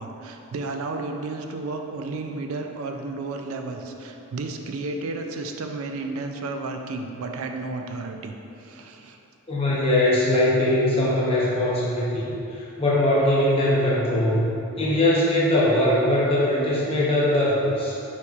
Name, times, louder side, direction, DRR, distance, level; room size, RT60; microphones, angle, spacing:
voice 1, 0.0-8.3 8.6-9.2, right 3 dB, 70° right, 4 dB, 0.4 m, -32 dB
voice 2, 9.5-18.0, left 1 dB, 25° left, -7 dB, 0.8 m, -21 dB
5.7 x 3.1 x 2.4 m, 2.8 s
head